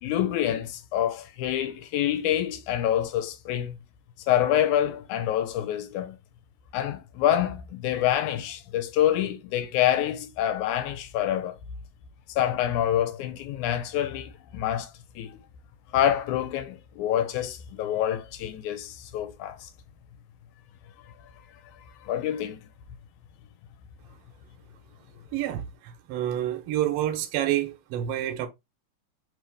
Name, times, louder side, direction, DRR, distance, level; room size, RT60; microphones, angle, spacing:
voice 1, 0.0-3.8 4.3-6.2 6.7-11.6 12.3-14.9 15.2-15.4 15.9-19.7 22.0-22.6, left 11 dB, 90° left, 2.1 m, -26 dB
voice 2, 25.3-28.5, right 12 dB, 70° right, 1.5 m, -28 dB
4.6 x 3.3 x 3.3 m
omnidirectional pair, 3.5 m